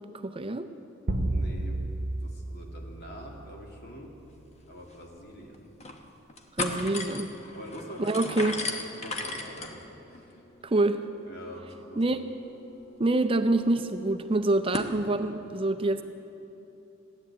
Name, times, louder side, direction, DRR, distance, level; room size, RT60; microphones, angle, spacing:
voice 1, 0.2-0.7 6.6-7.3 8.0-8.6 10.6-11.0 12.0-12.2 13.0-16.0, right 2 dB, 25° right, 9 dB, 0.5 m, -26 dB
sound 1, 1.1-3.7, right 1 dB, 60° right, 0.9 m, -31 dB
voice 2, 1.2-1.8 2.2-4.1 4.7-5.7 7.5-8.2 8.7-10.4 11.3-12.0, equal, 55° left, -1 dB, 2.5 m, -45 dB
sound 2, 4.6-4.7 4.9-5.0 5.5-6.0 6.3-14.9, left 3 dB, 35° left, 1.1 m, -38 dB
15.5 x 10.5 x 8.3 m, 3.0 s
head